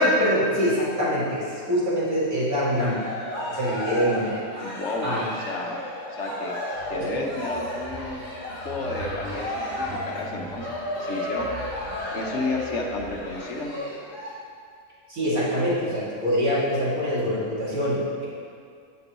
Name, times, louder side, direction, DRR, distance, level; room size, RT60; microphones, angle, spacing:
voice 1, 0.0-3.0 3.5-4.4 5.0-5.3 7.0-7.1 15.1-18.2, equal, 85° right, -8 dB, 2.8 m, -24 dB
Cheering, 2.5-14.3, left 1 dB, 30° right, 2.5 m, -33 dB
voice 2, 4.6-5.8 6.1-6.5 6.9-8.2 8.6-11.5 12.1-13.7, left 2 dB, 60° left, 1 dB, 1.1 m, -32 dB
sound 1, 6.7-13.6, equal, 50° right, 2.9 m, -44 dB
16.0 x 5.3 x 3.0 m, 2.2 s
omnidirectional pair, 1.5 m